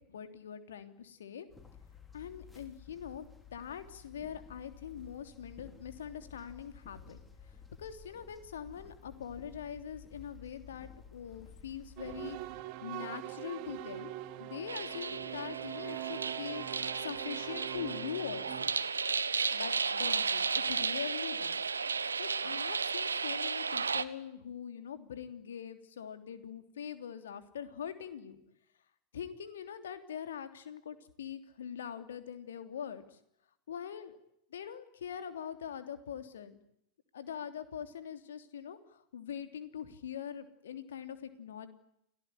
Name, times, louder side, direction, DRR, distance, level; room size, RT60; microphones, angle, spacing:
voice 1, 0.0-1.5 2.1-7.2 7.8-12.4 12.8-16.6 17.0-18.7 19.5-21.6 22.2-28.4 29.1-33.2 33.7-34.2 34.5-36.6 37.1-41.7, left 8 dB, 65° left, 9 dB, 3.3 m, -43 dB
sound 1, 1.5-12.5, left 6 dB, 15° left, 5.2 m, -54 dB
sound 2, 12.0-18.7, right 15 dB, 45° right, 1.8 m, -43 dB
sound 3, 14.7-24.0, right 5 dB, 75° right, 1.3 m, -34 dB
29.5 x 18.5 x 10.0 m, 0.76 s
figure-of-eight pair, 90°, 0 cm